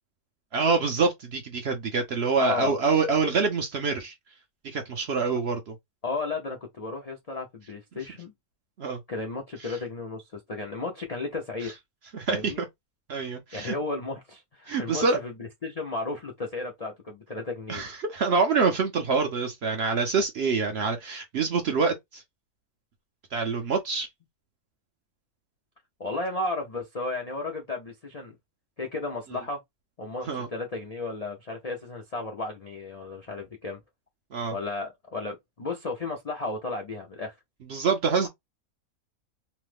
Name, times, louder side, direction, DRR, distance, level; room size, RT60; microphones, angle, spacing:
voice 1, 0.5-4.1 4.6-5.8 8.8-9.0 9.6-9.8 11.6-11.7 12.1-12.5 13.1-13.7 14.7-15.2 17.7-22.2 23.3-24.1 30.3-30.5 34.3-34.6 37.7-38.3, right 4 dB, 60° right, 0.7 m, -26 dB
voice 2, 2.4-2.8 6.0-8.3 9.1-11.7 12.3-12.6 13.5-15.3 15.6-17.8 26.0-28.3 28.8-29.6 30.0-33.8 34.5-37.3, left 3 dB, 55° left, 0.4 m, -34 dB
3.0 x 2.0 x 3.2 m
omnidirectional pair, 1.5 m